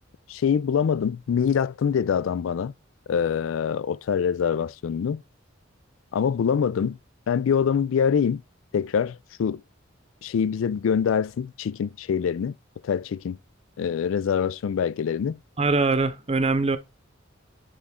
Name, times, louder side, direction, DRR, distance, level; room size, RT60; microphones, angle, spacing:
voice 1, 0.3-2.7 3.1-5.2 6.1-7.0 7.3-8.4 8.7-9.6 10.2-12.5 12.8-13.4 13.8-15.4, left 7 dB, 75° left, 0.3 m, -24 dB
voice 2, 15.6-16.8, right 3 dB, 30° right, 0.8 m, -22 dB
10.0 x 3.7 x 3.6 m
head